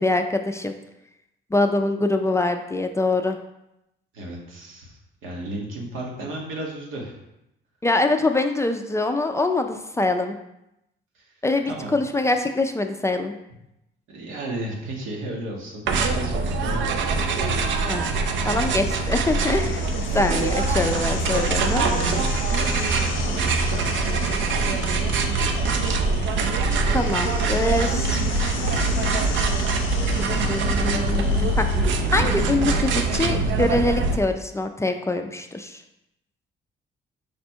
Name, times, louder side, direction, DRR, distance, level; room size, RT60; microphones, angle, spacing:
voice 1, 0.0-0.7 1.5-3.4 7.8-10.3 11.4-13.3 17.9-18.1 18.4-19.9 20.1-21.8 26.9-28.2 30.5-31.7 32.1-35.8, left 2 dB, 15° left, 6 dB, 0.3 m, -24 dB
voice 2, 4.1-7.2 11.1-11.3 11.6-12.1 14.1-16.9 21.8-22.4 22.9-24.2, right 1 dB, 85° right, -1 dB, 1.1 m, -34 dB
sound 1, 15.9-34.2, right 3 dB, 70° right, 0.5 m, -23 dB
sound 2, 18.5-32.3, left 7 dB, 80° left, 0.5 m, -37 dB
5.0 x 2.2 x 4.4 m, 0.86 s
cardioid pair, 90°, 20 cm